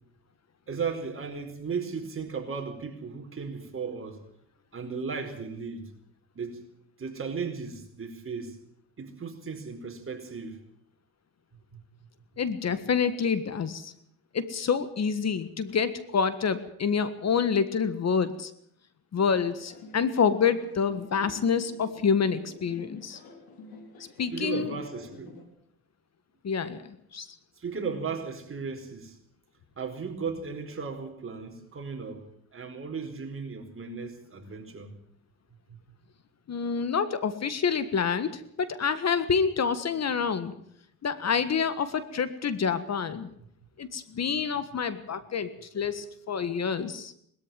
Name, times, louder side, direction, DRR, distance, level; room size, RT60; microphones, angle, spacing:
voice 1, 0.7-4.2 4.7-5.9 6.3-6.6 7.0-8.6 9.0-10.6 11.7-11.8 24.3-25.3 27.6-29.2 29.8-34.9, right 5 dB, 35° right, 4 dB, 4.7 m, -36 dB
voice 2, 12.4-13.9 14.3-18.5 19.1-23.2 24.2-24.7 26.4-27.3 36.5-40.5 41.0-43.3 43.8-47.1, left 6 dB, 45° left, 13 dB, 1.6 m, -27 dB
sound 1, 19.3-25.5, left 3 dB, 80° left, 5.0 m, -49 dB
20.5 x 13.5 x 9.2 m, 0.69 s
cardioid pair, 105°, 36 cm